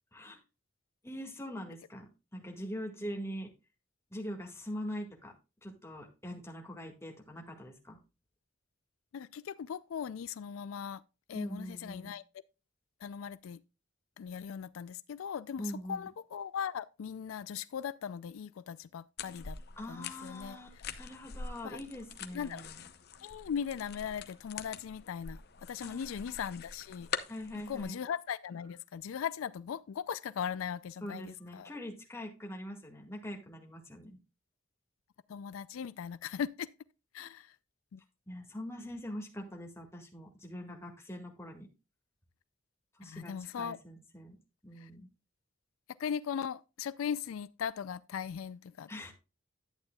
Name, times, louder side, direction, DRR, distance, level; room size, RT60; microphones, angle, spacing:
voice 1, 0.1-0.4 1.0-3.5 4.1-5.3 5.6-8.0 11.3-12.1 15.6-16.1 19.8-22.8 25.8-26.4 27.3-28.0 31.0-34.2 38.3-41.7 42.9-44.4 44.6-45.1 48.9-49.1, equal, 15° left, 1.9 m, -43 dB
voice 2, 9.1-11.0 11.3-12.2 13.0-13.6 14.2-15.6 15.9-19.6 19.9-20.6 21.6-21.8 22.3-22.6 23.2-27.1 27.7-31.7 35.3-36.7 37.1-37.6 37.9-38.0 43.0-43.8 44.8-44.9 46.0-48.9, left 7 dB, 80° left, 0.4 m, -39 dB
sound 1, 19.2-27.8, left 6 dB, 50° left, 0.7 m, -44 dB
11.0 x 8.8 x 2.2 m
head